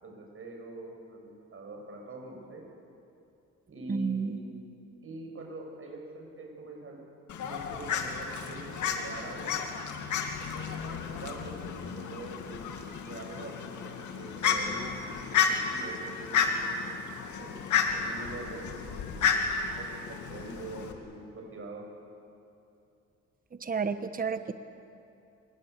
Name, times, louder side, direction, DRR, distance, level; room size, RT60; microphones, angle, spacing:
voice 1, 0.0-2.7 3.7-4.5 5.0-7.0 7.4-9.7 10.4-12.6 13.0-15.0 15.3-16.6 17.4-19.3 19.8-19.9 20.3-21.8, right 2 dB, 45° right, 0 dB, 7.1 m, -44 dB
voice 2, 3.9-4.4 23.5-24.5, right 5 dB, 30° right, 10 dB, 1.3 m, -31 dB
Fowl, 7.3-20.9, left 6 dB, 75° left, 2.6 m, -32 dB
26.5 x 21.0 x 8.3 m, 2.7 s
cardioid pair, 90°, 30 cm